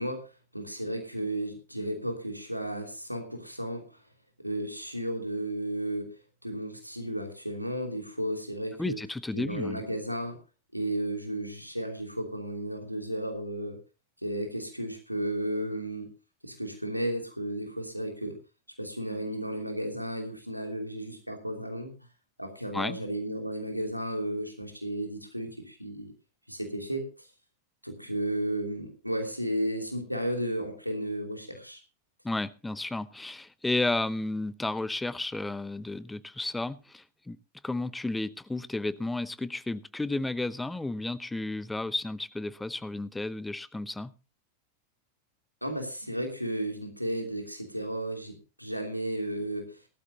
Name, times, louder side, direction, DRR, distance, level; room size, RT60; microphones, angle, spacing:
voice 1, 0.0-4.0 4.4-9.0 9.3-10.4 10.7-13.8 14.2-16.1 16.4-18.4 18.8-21.9 22.4-26.1 26.5-27.3 27.8-31.8 45.6-49.8, right 1 dB, 90° right, 3.0 m, -33 dB
voice 2, 8.8-9.8 22.7-23.0 32.2-37.4 37.6-44.1, left 2 dB, 5° left, 0.8 m, -32 dB
18.5 x 13.0 x 2.8 m
figure-of-eight pair, 90°, 0 cm